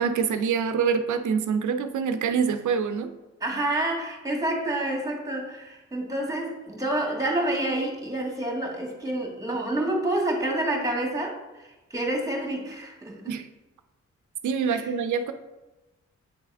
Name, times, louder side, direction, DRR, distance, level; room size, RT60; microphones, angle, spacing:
voice 1, 0.0-3.1 13.3-13.4 14.4-15.3, right 6 dB, 80° right, 8 dB, 0.5 m, -25 dB
voice 2, 3.4-13.3 14.7-14.9, right 1 dB, 10° right, 0 dB, 1.7 m, -28 dB
8.5 x 3.4 x 3.4 m, 1.1 s
cardioid pair, 60°, 30 cm